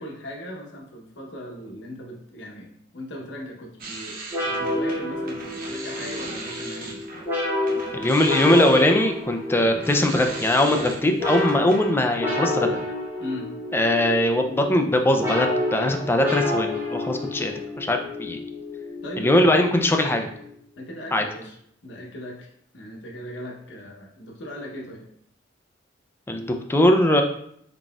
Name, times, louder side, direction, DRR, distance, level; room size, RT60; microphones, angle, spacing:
voice 1, 0.0-7.0 13.2-13.5 19.0-19.5 20.8-21.6 21.8-22.5 22.7-25.0, left 1 dB, 70° left, -1 dB, 0.9 m, -38 dB
rocking chair final mono, 3.8-7.3 7.6-11.9, right 2 dB, 50° right, 0.7 m, -38 dB
sound 1, 4.3-20.5, left 1 dB, 10° right, 0.9 m, -29 dB
voice 2, 7.9-12.8 13.7-18.4 19.2-20.3 21.1-21.2 26.3-27.2, left 1 dB, 10° left, 4 dB, 0.3 m, -21 dB
3.9 x 3.7 x 2.3 m, 0.68 s
head